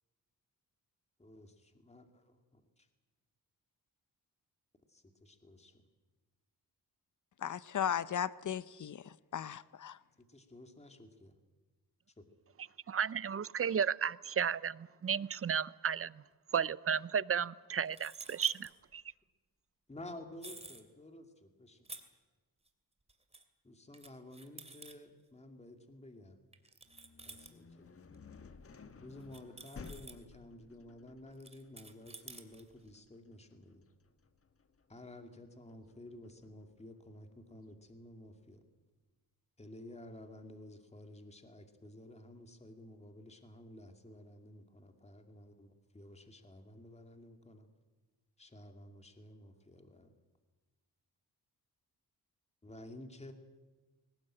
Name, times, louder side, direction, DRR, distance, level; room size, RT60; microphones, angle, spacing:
voice 1, 1.2-2.9 4.9-5.8 10.2-11.3 12.2-12.3 19.9-21.9 23.6-26.4 27.2-28.0 29.0-33.8 34.9-38.6 39.6-47.7 48.4-50.1 52.6-53.3, left 1 dB, 20° left, 2.5 m, -53 dB
voice 2, 7.4-10.0, left 9 dB, 55° left, 0.8 m, -36 dB
voice 3, 12.9-16.2 16.5-19.0, right 7 dB, 40° right, 0.6 m, -33 dB
sound 1, 17.8-18.7 20.4-20.8 21.8-22.0 22.7-22.8 23.1-23.4 23.9-25.0 26.5-27.6 28.1-28.2 28.7-28.8 29.2-30.2 31.3-32.9, right 2 dB, 15° right, 2.7 m, -51 dB
sound 2, 26.9-36.6, left 4 dB, 40° left, 1.5 m, -55 dB
21.5 x 19.0 x 9.0 m
cardioid pair, 85°, 36 cm